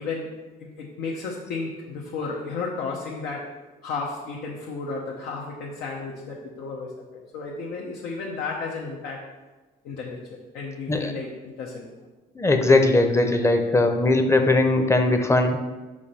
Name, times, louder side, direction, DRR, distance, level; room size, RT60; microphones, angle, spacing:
voice 1, 0.0-3.6 3.8-9.2 9.8-12.1, left 4 dB, 75° left, -2 dB, 0.9 m, -33 dB
voice 2, 12.4-15.6, left 2 dB, 15° left, 6 dB, 0.7 m, -19 dB
5.2 x 4.9 x 5.6 m, 1.2 s
cardioid pair, 110°, 17 cm